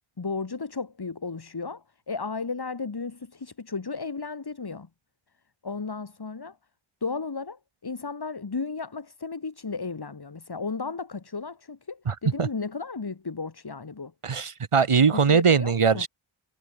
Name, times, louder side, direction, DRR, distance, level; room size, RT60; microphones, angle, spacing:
voice 1, 0.2-4.9 5.6-6.6 7.0-14.1 15.1-16.1, left 4 dB, 50° left, 4.2 m, -34 dB
voice 2, 12.1-12.5 14.2-16.1, right 6 dB, 90° right, 6.4 m, -21 dB
wide cardioid pair, 80°, 50 cm